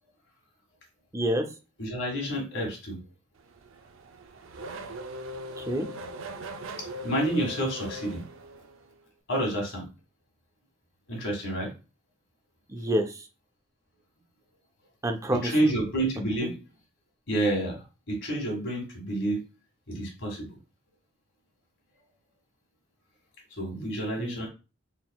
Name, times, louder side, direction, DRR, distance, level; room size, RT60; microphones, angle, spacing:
voice 1, 1.1-1.5 5.6-5.9 12.7-13.2 15.0-15.5 16.4-16.5 24.2-24.4, right 1 dB, 15° right, 4 dB, 0.5 m, -28 dB
voice 2, 1.8-3.0 7.0-8.2 9.3-9.9 11.1-11.7 15.4-16.6 17.3-17.8 18.1-19.4 19.9-20.5 23.6-24.5, right 1 dB, 65° left, 0 dB, 1.8 m, -29 dB
Race car auto racing / Accelerating revving vroom, 3.4-8.9, equal, 85° right, 0.5 m, -40 dB
4.2 x 3.7 x 2.3 m, 0.31 s
head